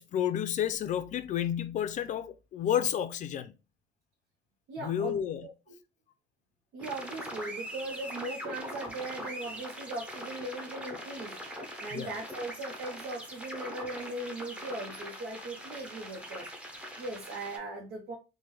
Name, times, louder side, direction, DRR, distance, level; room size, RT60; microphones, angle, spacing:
voice 1, 0.0-3.5 4.8-5.5 11.9-12.1, left 10 dB, 45° left, 0.4 m, -31 dB
voice 2, 4.7-5.7 6.7-18.2, right 2 dB, 85° right, 0.7 m, -39 dB
sound 1, 6.8-17.6, equal, 5° right, 0.7 m, -42 dB
3.4 x 2.1 x 3.0 m
cardioid pair, 110°, 17 cm